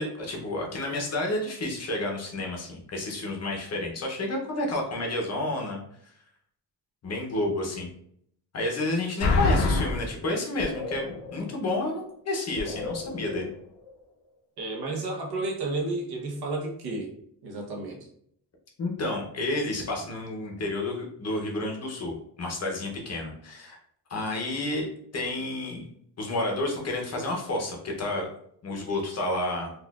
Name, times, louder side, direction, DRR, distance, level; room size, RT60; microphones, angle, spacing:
voice 1, 0.0-5.8 7.0-7.9 8.5-13.5 18.8-23.8 24.1-24.9 25.1-25.9 26.2-28.3 28.6-29.7, left 2 dB, 40° left, 0 dB, 0.7 m, -30 dB
sound 1, 9.2-10.1 10.6-11.5 11.8-11.9 12.6-13.5 13.8-13.9, left 3 dB, 75° left, 0.7 m, -27 dB
voice 2, 14.6-17.1 17.4-18.1, right 2 dB, 60° right, 0 dB, 0.9 m, -32 dB
4.1 x 2.4 x 2.3 m, 0.68 s
wide cardioid pair, 180°, 42 cm